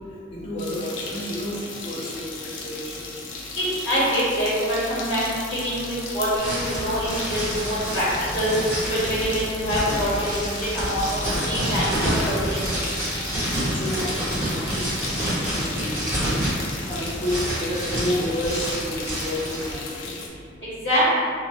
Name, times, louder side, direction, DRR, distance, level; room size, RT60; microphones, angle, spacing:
voice 1, 0.1-3.1 3.3-3.4 5.5-5.8 13.7-20.2, left 1 dB, 30° left, -6 dB, 0.5 m, -31 dB
sound 1, 0.6-20.3, left 3 dB, 85° left, 0.5 m, -36 dB
voice 2, 3.6-8.0 8.3-8.5 8.9-11.0 11.4-12.3 20.8-21.1, equal, 65° left, -10 dB, 1.3 m, -25 dB
sound 2, 6.4-19.7, equal, 15° right, 0.9 m, -28 dB
2.8 x 2.2 x 2.8 m, 2.3 s
head